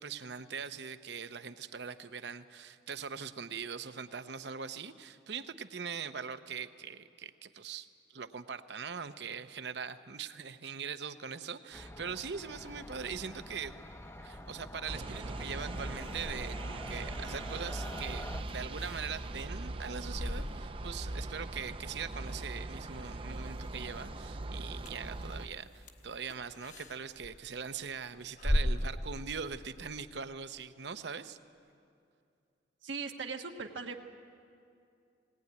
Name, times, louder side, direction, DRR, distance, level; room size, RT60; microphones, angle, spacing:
voice 1, 0.0-7.9 8.1-13.8 14.2-31.4, right 6 dB, 65° right, 11 dB, 0.8 m, -41 dB
sound 1, 11.7-18.4, left 1 dB, 15° left, 0.7 m, -46 dB
sound 2, 12.3-29.9, equal, 40° left, 1.3 m, -41 dB
sound 3, 14.9-25.5, right 2 dB, 30° right, 0.5 m, -40 dB
voice 2, 32.8-34.0, right 4 dB, 85° right, 3 dB, 1.2 m, -39 dB
19.5 x 18.5 x 9.4 m, 2.5 s
head